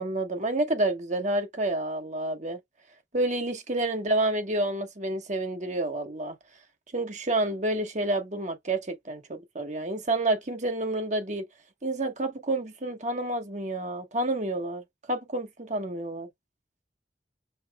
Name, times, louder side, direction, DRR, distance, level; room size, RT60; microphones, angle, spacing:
voice 1, 0.0-2.6 3.1-6.4 6.9-11.5 11.8-16.3, right 2 dB, 40° right, 1.3 m, -29 dB
5.6 x 4.2 x 2.2 m
head